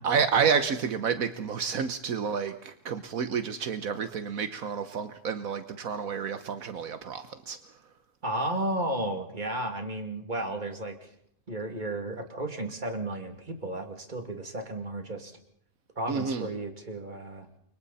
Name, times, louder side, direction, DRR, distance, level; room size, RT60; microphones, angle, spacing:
voice 1, 0.0-7.6 16.1-16.5, right 6 dB, 75° right, 10 dB, 1.5 m, -29 dB
voice 2, 8.2-11.0 11.5-15.4 16.0-17.5, right 1 dB, 35° right, 5 dB, 2.7 m, -33 dB
29.5 x 24.5 x 4.2 m, 0.67 s
omnidirectional pair, 1.5 m